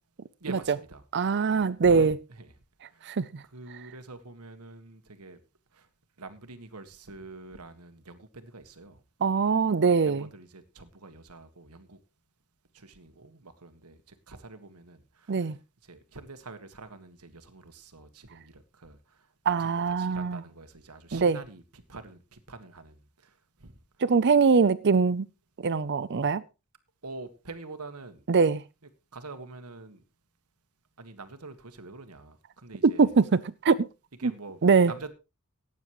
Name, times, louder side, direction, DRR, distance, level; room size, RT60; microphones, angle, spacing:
voice 1, 0.4-1.0 1.5-2.5 2.9-3.1 3.5-5.4 5.7-5.9 6.2-9.0 10.0-12.0 12.7-15.5 15.9-19.0 19.5-23.0 23.6-23.7 27.0-28.2 29.1-30.0 31.0-33.1 34.2-34.6 34.9-35.1, right 3 dB, 85° right, 1.7 m, -45 dB
voice 2, 1.1-2.2 3.1-3.3 9.2-10.3 15.3-15.5 19.5-20.4 21.1-21.4 24.0-25.3 25.6-26.4 28.3-28.6 32.8-33.9 34.2-34.3 34.6-34.9, right 5 dB, 50° right, 0.5 m, -22 dB
18.5 x 9.5 x 3.1 m
head